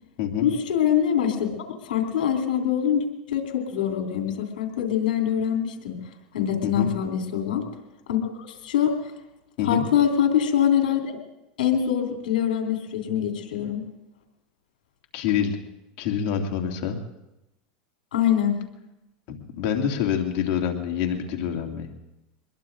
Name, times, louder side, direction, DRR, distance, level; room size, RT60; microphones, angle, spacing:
voice 1, 0.4-1.5 1.8-6.0 6.3-7.7 8.1-9.0 9.6-11.2 11.6-13.8 18.1-18.6, left 9 dB, 90° left, 2 dB, 3.0 m, -24 dB
voice 2, 9.6-9.9 15.1-15.6 16.0-17.0 19.3-21.9, left 8 dB, 65° left, 2 dB, 2.3 m, -26 dB
24.5 x 21.0 x 2.6 m, 0.93 s
supercardioid pair, 105°, 5 cm